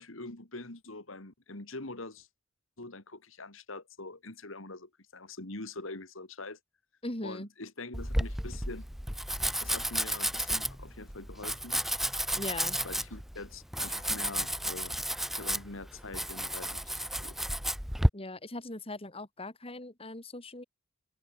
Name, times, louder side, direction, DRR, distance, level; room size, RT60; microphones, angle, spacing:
voice 1, 0.0-2.3 2.8-6.6 7.2-8.9 9.6-11.8 12.8-15.0 15.3-16.8 17.1-17.4, left 2 dB, 75° left, 2.7 m, -44 dB
voice 2, 7.0-7.5 12.3-12.8 13.9-14.0 18.1-20.6, left 2 dB, 30° left, 3.0 m, -40 dB
Domestic sounds home sounds, 7.9-18.1, equal, ahead, 1.2 m, -32 dB
head